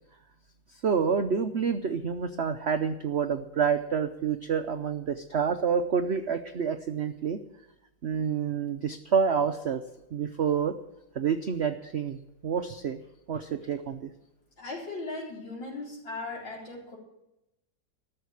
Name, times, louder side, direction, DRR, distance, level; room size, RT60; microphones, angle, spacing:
voice 1, 0.7-7.4 8.0-9.8 10.1-10.8 11.1-13.0 13.3-14.1, right 6 dB, 75° right, 8 dB, 0.6 m, -28 dB
voice 2, 14.6-17.0, left 2 dB, 85° left, -3 dB, 4.7 m, -38 dB
14.0 x 6.7 x 9.5 m, 0.89 s
omnidirectional pair, 2.0 m